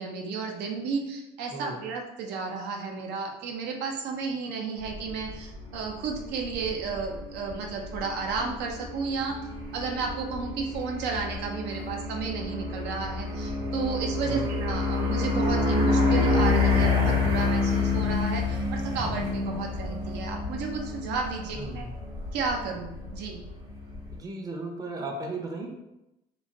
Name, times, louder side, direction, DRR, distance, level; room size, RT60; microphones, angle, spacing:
voice 1, 0.0-9.4 9.7-21.8 22.3-23.4, right 4 dB, 85° right, 2 dB, 0.5 m, -32 dB
sound 1, 4.8-24.2, left 3 dB, 65° right, 1.3 m, -28 dB
voice 2, 21.6-21.9 24.1-25.7, right 2 dB, 20° right, 2 dB, 0.5 m, -36 dB
3.0 x 2.1 x 2.6 m, 0.92 s
cardioid pair, 110°, 17 cm